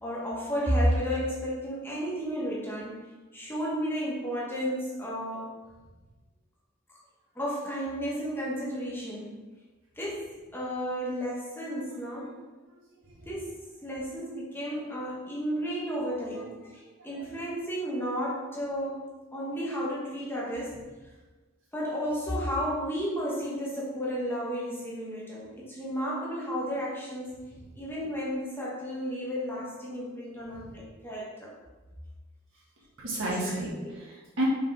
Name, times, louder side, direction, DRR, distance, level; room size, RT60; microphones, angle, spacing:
voice 1, 0.0-3.0 3.3-5.5 7.3-9.4 10.0-12.4 13.3-19.0 19.3-20.8 21.7-27.3 27.8-31.5 33.4-33.9, equal, 10° left, -5 dB, 1.1 m, -32 dB
voice 2, 33.0-34.5, right 2 dB, 65° right, -5 dB, 1.8 m, -33 dB
5.3 x 5.1 x 3.5 m, 1.2 s
head